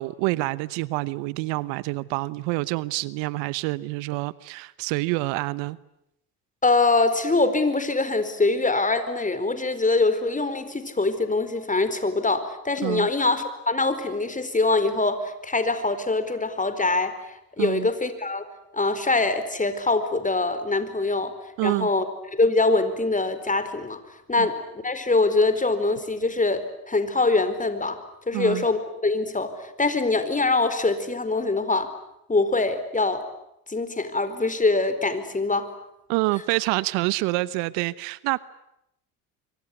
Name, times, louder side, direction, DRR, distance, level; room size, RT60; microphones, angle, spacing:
voice 1, 0.0-5.8 12.8-13.1 17.6-17.9 21.6-21.9 24.4-24.5 28.3-28.6 36.1-38.4, right 21 dB, 70° right, 19 dB, 1.0 m, -27 dB
voice 2, 6.6-18.5 18.7-21.3 21.6-22.0 22.3-24.0 24.3-28.0 28.3-31.9 32.3-33.3 33.7-35.7, left 3 dB, 15° left, 11 dB, 4.5 m, -23 dB
25.0 x 24.5 x 9.8 m, 0.82 s
hypercardioid pair, 70°, 45 cm